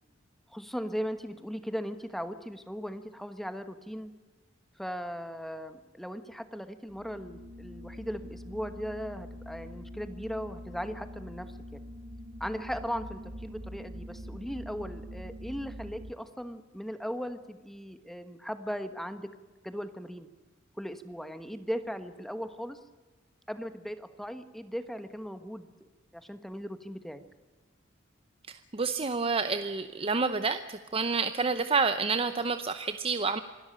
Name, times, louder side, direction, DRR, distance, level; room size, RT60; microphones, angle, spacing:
voice 1, 0.5-4.1 4.8-11.8 12.4-19.3 19.6-20.3 20.8-22.8 23.5-25.9 26.1-27.2, equal, ahead, 10 dB, 1.2 m, -38 dB
sound 1, 6.9-16.1, equal, 80° right, 4.4 m, -44 dB
voice 2, 28.7-33.4, right 4 dB, 30° right, 10 dB, 0.7 m, -29 dB
26.0 x 13.0 x 8.7 m, 1.3 s
head